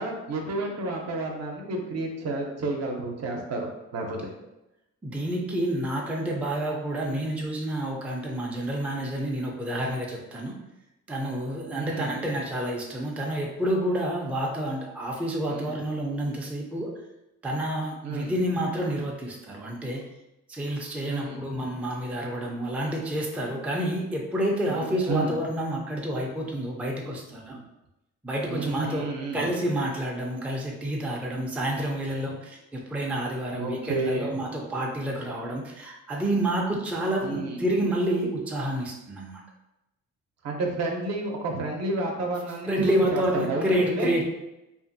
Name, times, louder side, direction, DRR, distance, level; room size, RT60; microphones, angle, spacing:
voice 1, 0.0-4.3 11.7-12.2 15.5-15.7 18.0-18.3 21.1-21.4 24.7-24.8 25.1-25.3 28.5-29.5 33.5-34.4 37.2-37.6 40.4-44.1, right 2 dB, 60° right, 1 dB, 0.7 m, -31 dB
voice 2, 5.0-10.6 11.1-16.9 17.4-20.1 20.5-27.6 28.2-29.1 29.3-39.4 42.7-44.2, right 1 dB, 5° right, -2 dB, 0.4 m, -29 dB
2.5 x 2.5 x 2.5 m, 0.94 s
cardioid pair, 90°, 30 cm